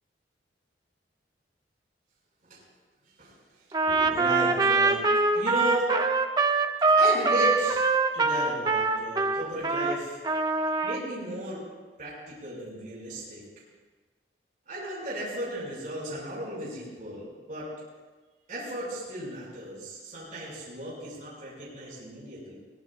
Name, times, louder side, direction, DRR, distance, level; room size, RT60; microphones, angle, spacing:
voice 1, 3.0-3.4 3.9-5.0 5.3-5.9 7.0-10.2 10.8-11.6 12.0-13.4 14.7-17.7 18.5-22.5, right 1 dB, 45° right, -7 dB, 6.3 m, -35 dB
Trumpet, 3.7-10.0 10.2-11.0, right 3 dB, 25° right, 0.8 m, -23 dB
23.0 x 19.0 x 2.5 m, 1.4 s
head